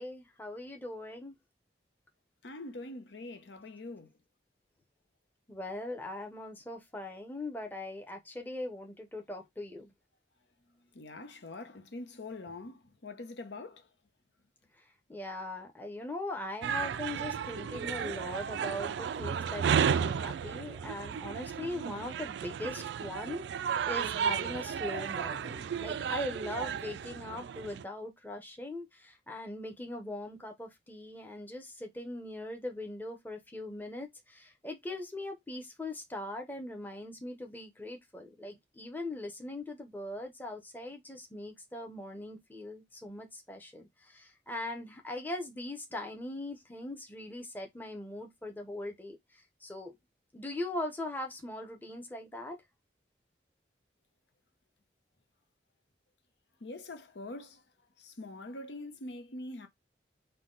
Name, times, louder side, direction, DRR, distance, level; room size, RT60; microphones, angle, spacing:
voice 1, 0.0-1.4 5.5-9.9 15.1-49.2 49.6-49.9 50.3-52.6, left 1 dB, 10° left, 0.8 m, -40 dB
voice 2, 2.4-4.1 10.9-13.9 56.6-57.6 58.0-59.7, left 2 dB, 80° left, 0.8 m, -44 dB
sound 1, 16.6-27.8, right 7 dB, 80° right, 0.3 m, -33 dB
5.7 x 2.2 x 3.8 m
head